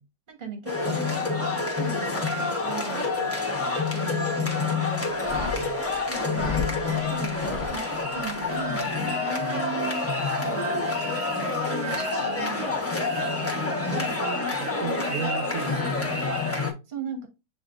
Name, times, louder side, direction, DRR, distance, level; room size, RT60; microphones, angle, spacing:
voice 1, 0.3-3.4 3.9-4.8 6.1-7.4 7.7-10.1 10.4-11.1 12.0-12.8 13.3-14.2 16.9-17.3, right 6 dB, 30° right, 1.1 m, -39 dB
sound 1, 0.7-16.7, left 3 dB, 15° left, 0.5 m, -27 dB
sound 2, 5.1-8.3, left 4 dB, 40° left, 1.1 m, -35 dB
voice 2, 5.5-5.8 13.9-16.7, right 6 dB, 75° right, 0.8 m, -36 dB
8.0 x 2.7 x 2.4 m
omnidirectional pair, 2.0 m